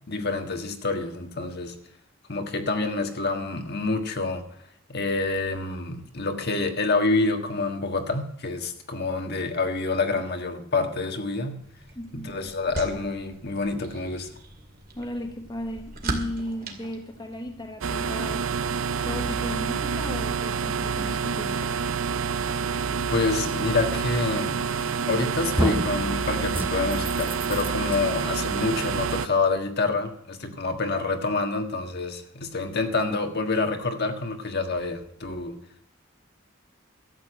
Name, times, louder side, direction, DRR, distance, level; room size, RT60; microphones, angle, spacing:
voice 1, 0.1-1.7 2.3-4.4 4.9-11.6 12.1-14.3 23.1-24.6 25.1-35.6, left 3 dB, 55° left, 5 dB, 1.6 m, -27 dB
sound 1, 11.6-17.8, right 2 dB, 45° right, 2.3 m, -38 dB
voice 2, 11.9-12.3 14.9-18.5 19.0-21.8, left 1 dB, 20° left, 4 dB, 1.1 m, -35 dB
sound 2, 17.8-29.3, right 5 dB, 85° right, 0.6 m, -28 dB
sound 3, 24.8-25.2 25.6-26.0 26.5-28.0, right 1 dB, 10° right, 0.8 m, -29 dB
13.0 x 8.2 x 7.9 m, 0.69 s
head